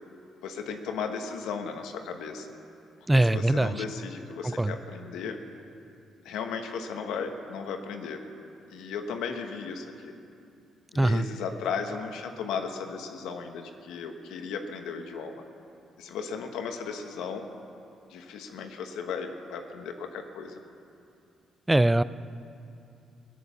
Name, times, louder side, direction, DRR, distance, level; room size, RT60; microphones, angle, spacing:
voice 1, 0.4-2.5 3.1-5.4 6.2-8.2 8.7-10.1 10.9-15.4 16.0-17.5 18.1-20.6, left 6 dB, 90° left, 5 dB, 1.2 m, -35 dB
voice 2, 3.1-3.7 4.6-4.7 11.0-11.3 21.7-22.0, right 1 dB, 10° right, 16 dB, 0.4 m, -22 dB
17.5 x 9.4 x 7.0 m, 2.5 s
cardioid pair, 90°, 0 cm